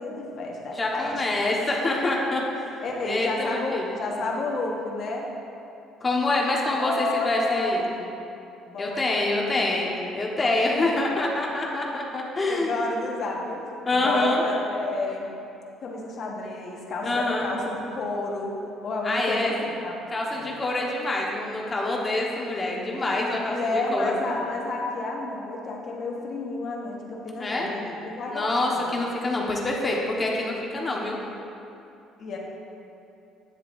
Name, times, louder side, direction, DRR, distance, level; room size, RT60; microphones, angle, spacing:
voice 1, 0.0-1.4 2.8-5.3 6.8-7.8 8.7-9.4 10.8-11.0 12.5-13.6 13.9-15.3 15.8-18.6 18.8-19.9 20.3-20.6 23.4-29.0 29.9-30.1 32.2-32.4, left 2 dB, 55° left, -1 dB, 1.3 m, -31 dB
voice 2, 0.7-4.0 6.0-7.8 8.8-12.8 13.9-14.4 17.0-17.5 19.0-19.5 20.1-24.2 27.4-27.7 28.3-31.2, left 2 dB, 30° left, -2 dB, 1.3 m, -26 dB
9.4 x 8.0 x 2.6 m, 2.7 s
supercardioid pair, 85°, 0 cm